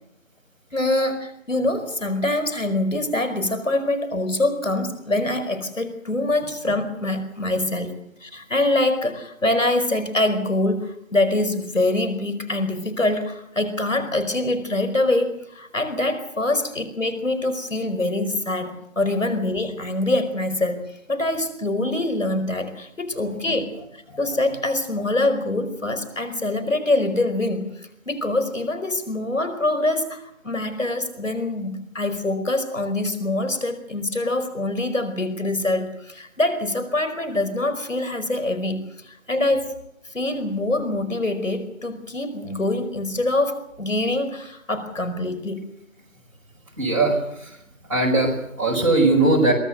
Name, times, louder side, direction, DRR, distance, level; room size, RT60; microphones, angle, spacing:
voice 1, 0.7-20.8 21.1-39.8 40.1-45.7, left 2 dB, 65° left, 9 dB, 5.0 m, -24 dB
voice 2, 46.8-47.5 47.9-49.5, right 2 dB, 25° right, -2 dB, 5.1 m, -20 dB
23.5 x 18.0 x 8.1 m, 0.78 s
figure-of-eight pair, 165°, 41 cm